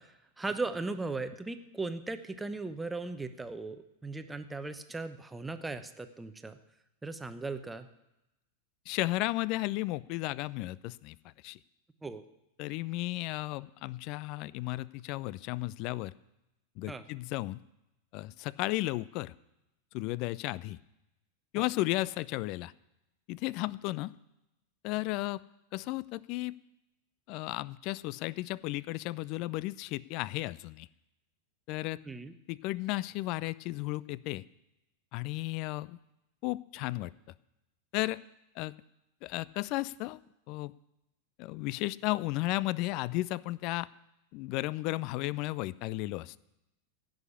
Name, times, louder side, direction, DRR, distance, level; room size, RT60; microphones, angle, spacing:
voice 1, 0.0-6.6 7.0-7.9 12.0-12.2 16.9-17.1 21.5-21.7 32.0-32.4, right 3 dB, 10° right, 9 dB, 0.9 m, -38 dB
voice 2, 8.9-11.2 11.4-11.6 12.6-16.1 16.8-17.6 18.1-19.3 19.9-20.8 21.5-22.7 23.3-24.1 24.8-25.4 25.7-26.5 27.3-30.9 31.7-32.0 32.5-34.4 35.1-36.0 36.4-37.1 37.9-38.2 38.6-38.7 39.2-40.2 40.5-40.7 41.4-43.9 44.3-46.3, left 19 dB, 40° left, 21 dB, 0.4 m, -34 dB
16.0 x 6.4 x 9.8 m, 0.90 s
figure-of-eight pair, 90°, 0 cm